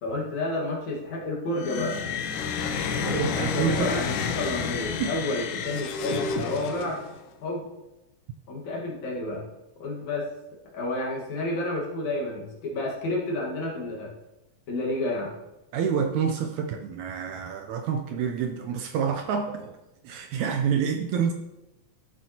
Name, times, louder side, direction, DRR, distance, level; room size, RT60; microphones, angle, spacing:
voice 1, 0.0-2.0 2.8-4.0 4.3-7.0 7.4-7.7 8.5-9.4 9.8-10.3 10.7-14.1 14.7-15.3, left 2 dB, 65° left, -2 dB, 2.8 m, -30 dB
sound 1, 1.5-7.2, left 6 dB, 80° left, 2.2 m, -30 dB
voice 2, 3.1-4.0 5.0-5.1 15.7-19.8 20.0-21.3, right 7 dB, 80° right, 4 dB, 1.8 m, -28 dB
12.5 x 7.6 x 2.8 m, 0.98 s
omnidirectional pair, 3.7 m